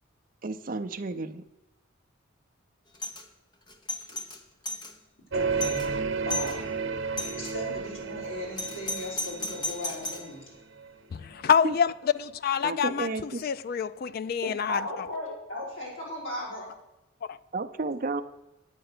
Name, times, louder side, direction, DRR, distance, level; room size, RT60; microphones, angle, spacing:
voice 1, 0.4-1.4 11.6-11.7 12.6-13.4 17.5-18.2, right 3 dB, 40° right, 0.6 m, -32 dB
Doorbell, 2.9-3.2 3.7-4.9 5.3-5.4 5.6-5.9 6.3-6.6 7.2-7.5 8.6-10.3, left 2 dB, 20° left, 0.9 m, -34 dB
voice 2, 5.3-5.9 6.2-6.6 7.3-10.4 14.4-16.7, left 1 dB, 70° left, 5.1 m, -37 dB
sound 1, 5.3-10.9, right 5 dB, 60° right, 0.9 m, -32 dB
voice 3, 11.1-14.8 17.2-17.4, left 7 dB, 45° left, 0.3 m, -27 dB
9.0 x 8.8 x 6.7 m
head